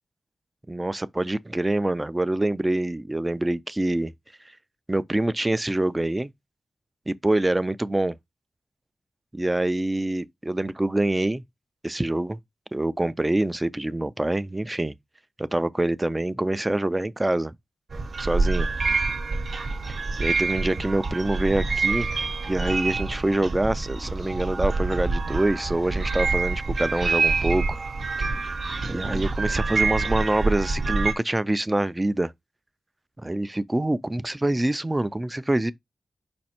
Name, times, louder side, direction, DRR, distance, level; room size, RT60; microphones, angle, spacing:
voice 1, 0.7-4.1 4.9-6.3 7.1-8.1 9.3-11.4 11.8-12.4 12.7-14.9 15.4-17.5 18.2-18.7 20.2-22.1 22.5-27.8 28.8-32.3 33.2-35.7, right 1 dB, 15° right, 0.4 m, -25 dB
sound 1, 17.9-31.1, right 3 dB, 55° right, 0.8 m, -26 dB
5.2 x 2.3 x 4.3 m
wide cardioid pair, 95°, 0 cm